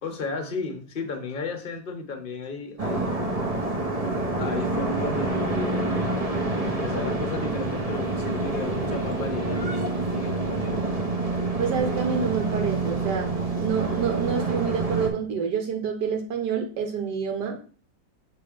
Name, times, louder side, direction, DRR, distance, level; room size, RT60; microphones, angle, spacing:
voice 1, 0.0-3.4 4.4-6.0 6.6-9.6 10.1-10.8, left 4 dB, 35° left, 6 dB, 1.1 m, -34 dB
sound 1, 2.8-15.1, right 2 dB, 25° right, 1.0 m, -27 dB
voice 2, 11.6-13.3 13.6-17.6, right 6 dB, 90° right, 3 dB, 1.5 m, -27 dB
6.9 x 3.3 x 5.0 m, 0.39 s
omnidirectional pair, 1.7 m